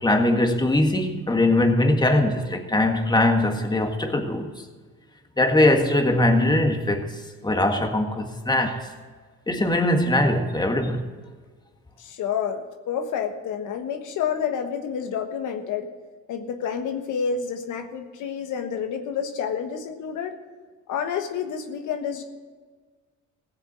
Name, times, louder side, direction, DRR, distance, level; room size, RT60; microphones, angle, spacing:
voice 1, 0.0-4.5 5.4-7.1 7.4-8.8 9.5-11.0, left 1 dB, 15° left, 1.8 m, -21 dB
voice 2, 12.0-15.9 16.3-20.3 20.9-22.2, left 7 dB, 85° left, 1.4 m, -29 dB
16.5 x 7.3 x 6.1 m
cardioid pair, 90°, 30 cm